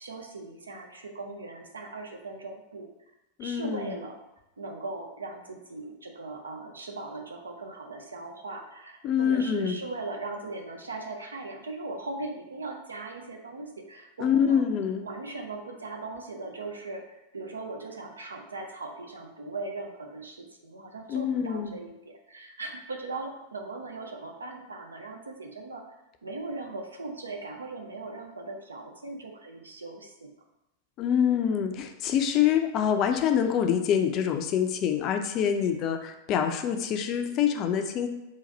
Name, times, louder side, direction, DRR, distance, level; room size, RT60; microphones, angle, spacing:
voice 1, 0.0-2.9 3.4-4.2 4.6-14.7 15.0-25.8 26.2-30.3, right 3 dB, 75° right, 2 dB, 0.6 m, -39 dB
voice 2, 3.4-3.9 9.0-9.8 14.2-15.1 21.1-21.8 31.0-38.1, left 8 dB, 35° left, 6 dB, 0.4 m, -26 dB
3.9 x 2.5 x 4.0 m, 0.96 s
figure-of-eight pair, 90°, 0 cm